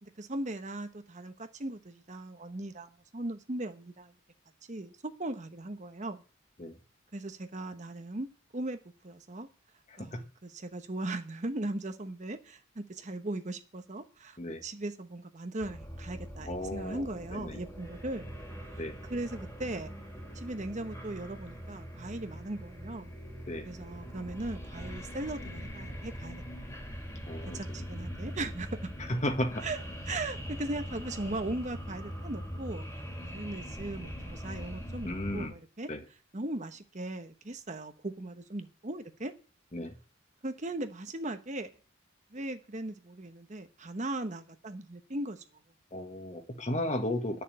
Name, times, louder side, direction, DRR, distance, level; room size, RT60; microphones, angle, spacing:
voice 1, 0.0-4.1 4.7-6.2 7.1-8.8 9.0-9.5 10.0-18.3 19.1-19.9 20.3-23.1 23.6-26.7 27.4-28.9 29.6-29.8 30.1-32.8 33.2-35.9 36.3-39.3 40.4-41.7 42.3-45.4, right 2 dB, 35° right, 1.0 m, -38 dB
voice 2, 9.9-10.2 14.4-14.6 16.5-17.0 17.3-17.6 18.8-19.0 23.5-23.7 27.3-27.9 29.1-29.7 35.0-35.5 35.9-36.0 39.7-40.0 45.9-47.4, left 1 dB, 35° left, 1.6 m, -34 dB
sound 1, 15.6-35.5, equal, 15° left, 2.6 m, -42 dB
11.0 x 6.9 x 8.7 m
head